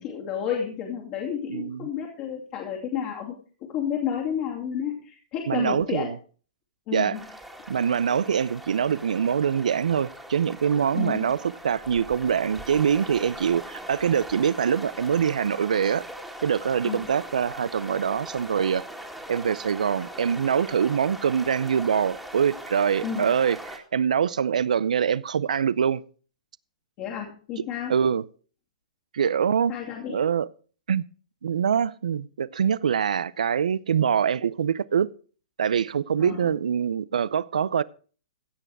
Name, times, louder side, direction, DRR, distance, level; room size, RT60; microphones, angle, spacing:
voice 1, 0.0-3.4 3.7-6.1 6.9-7.2 10.9-11.3 16.8-17.1 23.0-23.2 27.0-27.9 29.7-30.2 36.2-36.5, left 8 dB, 35° left, 2.6 m, -31 dB
voice 2, 1.5-1.9 5.5-6.2 6.9-7.2 7.7-11.4 11.6-16.0 16.4-18.8 19.3-26.0 27.9-28.2 29.1-29.7 30.1-30.5 30.9-31.0 31.4-35.1 35.6-37.8, right 7 dB, 80° right, 0.5 m, -24 dB
sound 1, 7.1-23.8, right 1 dB, ahead, 2.0 m, -41 dB
16.0 x 6.9 x 4.7 m
hypercardioid pair, 135°, 4 cm